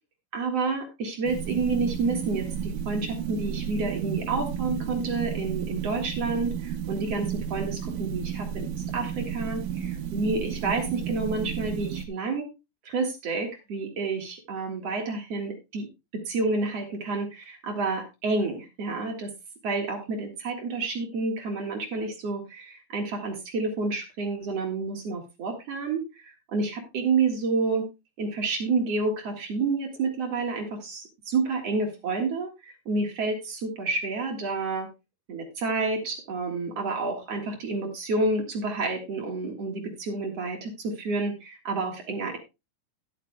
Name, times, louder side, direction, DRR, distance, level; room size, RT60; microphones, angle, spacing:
voice 1, 0.3-12.4 12.9-15.9 16.1-19.3 19.6-27.9 28.2-34.9 35.3-42.4, right 3 dB, 50° right, 3 dB, 2.6 m, -29 dB
sound 1, 1.2-12.1, right 8 dB, 80° right, 2.7 m, -32 dB
12.5 x 11.5 x 2.3 m, 0.26 s
omnidirectional pair, 4.0 m